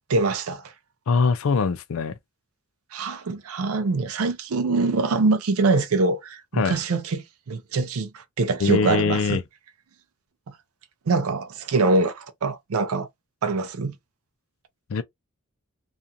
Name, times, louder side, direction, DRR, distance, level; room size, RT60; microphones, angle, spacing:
voice 1, 0.1-0.7 2.9-9.4 11.1-13.1 13.4-14.0, right 3 dB, 80° right, 0.5 m, -24 dB
voice 2, 1.1-2.2 6.6-6.8 8.6-9.4 14.9-15.0, left 5 dB, 70° left, 0.4 m, -22 dB
2.4 x 2.3 x 2.6 m
head